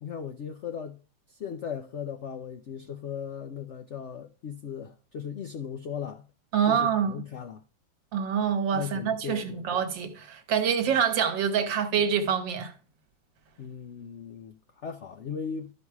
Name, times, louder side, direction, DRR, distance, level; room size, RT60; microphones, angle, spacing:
voice 1, 0.0-1.0 1.3-6.2 6.7-7.6 8.7-9.8 13.6-15.7, left 7 dB, 70° left, 0.6 m, -37 dB
voice 2, 6.5-7.2 8.1-12.7, right 7 dB, 80° right, 1.8 m, -26 dB
12.5 x 4.7 x 4.8 m
omnidirectional pair, 2.0 m